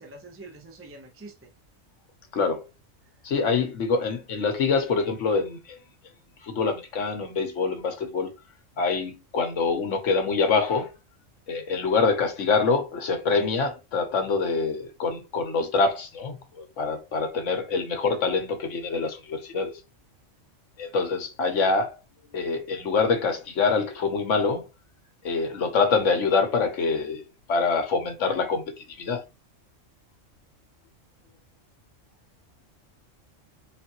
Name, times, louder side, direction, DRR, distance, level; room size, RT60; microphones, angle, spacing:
voice 1, 0.0-1.5, right 2 dB, 15° right, 0.6 m, -45 dB
voice 2, 2.3-2.6 3.2-5.8 6.4-8.3 8.8-10.9 11.5-19.8 20.8-22.0 22.3-24.7 25.2-27.2 27.5-29.2, left 4 dB, 75° left, 1.3 m, -25 dB
3.9 x 3.4 x 2.9 m
omnidirectional pair, 1.3 m